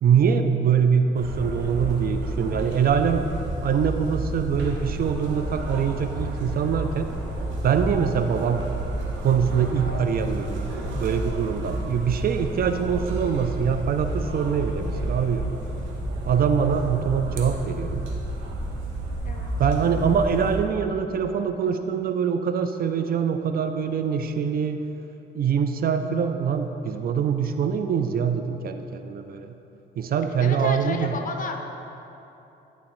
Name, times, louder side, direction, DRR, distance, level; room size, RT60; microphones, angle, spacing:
voice 1, 0.0-3.2 3.6-7.1 7.6-8.6 9.2-15.5 16.3-18.0 19.6-24.8 25.3-29.6 30.0-31.2, right 7 dB, 50° right, 8 dB, 0.4 m, -24 dB
sound 1, 1.1-20.6, right 1 dB, 75° right, 1.0 m, -31 dB
voice 2, 8.2-8.6 19.2-19.5 30.4-31.6, left 4 dB, 45° left, 4 dB, 0.7 m, -33 dB
11.0 x 4.1 x 3.1 m, 3.0 s
cardioid pair, 90°, 20 cm